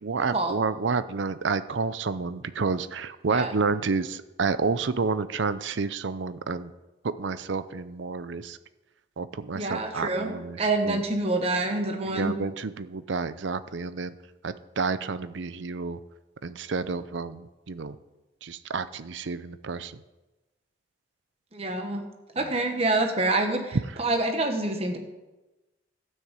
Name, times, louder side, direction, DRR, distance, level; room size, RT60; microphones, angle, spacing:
voice 1, 0.0-6.7 7.0-8.6 9.2-10.6 10.8-11.0 12.1-14.1 14.4-16.0 16.4-18.0 18.4-20.0, right 4 dB, 75° right, 13 dB, 0.6 m, -30 dB
voice 2, 9.5-10.3 10.6-12.3 21.5-22.0 22.3-25.0, right 2 dB, 30° right, 4 dB, 1.3 m, -26 dB
12.5 x 6.5 x 8.2 m, 1.1 s
head